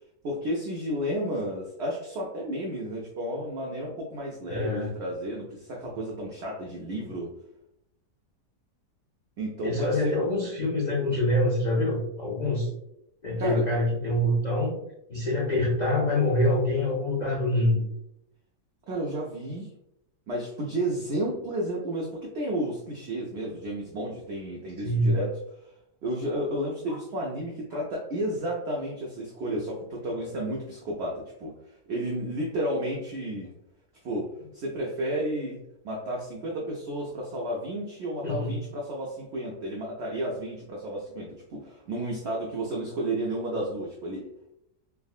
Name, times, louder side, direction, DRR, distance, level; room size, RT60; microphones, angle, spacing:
voice 1, 0.2-7.3 9.4-10.1 13.4-13.7 18.9-19.7 20.3-25.4 26.0-31.5 31.9-33.5 34.0-44.5, right 1 dB, 80° right, -2 dB, 0.5 m, -32 dB
voice 2, 4.5-4.9 9.6-12.7 13.2-14.8 15.1-17.8 24.8-25.1 38.2-38.5, left 1 dB, 65° left, -5 dB, 0.4 m, -25 dB
3.5 x 2.0 x 2.3 m, 0.81 s
omnidirectional pair, 1.7 m